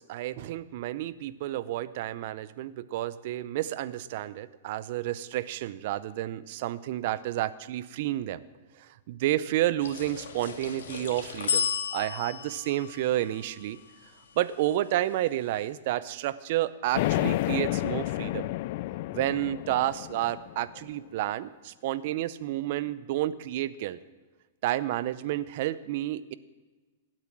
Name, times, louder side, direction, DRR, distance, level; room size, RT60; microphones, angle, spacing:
voice 1, 0.0-8.4 8.8-11.7 11.9-13.8 14.4-18.5 19.1-24.0 24.6-26.3, right 14 dB, 50° right, 17 dB, 0.6 m, -30 dB
sound 1, 9.8-14.4, left 7 dB, 85° left, 1.9 m, -34 dB
sound 2, 16.9-20.8, left 17 dB, 50° left, 0.3 m, -30 dB
16.0 x 9.0 x 6.1 m, 1.3 s
hypercardioid pair, 145°, 0 cm